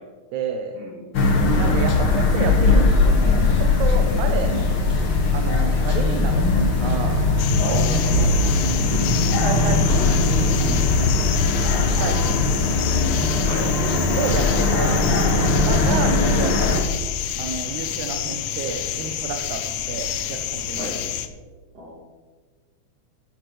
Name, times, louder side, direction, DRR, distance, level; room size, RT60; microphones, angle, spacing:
voice 1, 0.3-0.8 1.6-4.7 5.3-6.4 6.8-7.2 8.2-8.5 9.4-12.7 14.2-14.9 15.3-16.8 17.4-20.9, right 6 dB, 80° right, 4 dB, 2.3 m, -31 dB
sound 1, 1.1-16.8, left 3 dB, 45° left, 1.8 m, -19 dB
sound 2, 7.4-21.3, left 10 dB, 90° left, 1.2 m, -29 dB
voice 2, 7.6-8.3 13.4-13.8 20.8-21.0 21.7-22.0, equal, 55° right, -4 dB, 4.6 m, -31 dB
13.0 x 12.0 x 3.3 m, 1.5 s
omnidirectional pair, 3.4 m